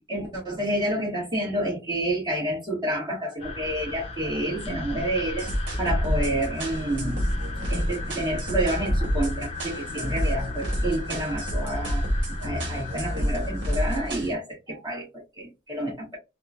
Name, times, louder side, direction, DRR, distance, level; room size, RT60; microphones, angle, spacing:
voice 1, 0.1-5.5 5.8-7.2 7.7-12.0 12.4-16.2, right 1 dB, 25° right, 1.7 m, -29 dB
sound 1, 3.4-14.1, left 2 dB, 35° left, 0.8 m, -36 dB
sound 2, 5.4-14.3, equal, 70° right, 1.3 m, -28 dB
3.6 x 2.4 x 2.5 m
head